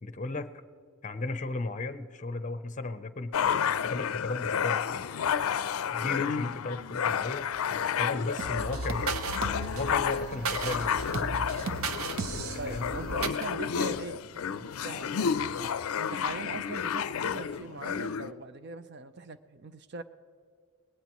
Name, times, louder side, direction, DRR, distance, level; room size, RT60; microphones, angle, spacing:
voice 1, 0.0-0.5 1.0-3.3 3.8-5.1 5.9-9.1 9.7-10.9 12.7-12.9, left 3 dB, 35° left, 11 dB, 0.6 m, -35 dB
sound 1, 3.3-18.3, left 7 dB, 85° left, 0.4 m, -31 dB
sound 2, 8.4-13.5, right 3 dB, 80° right, 0.8 m, -34 dB
voice 2, 12.6-15.3 16.0-20.0, right 3 dB, 50° right, 12 dB, 0.5 m, -41 dB
20.0 x 17.5 x 3.0 m, 2.2 s
head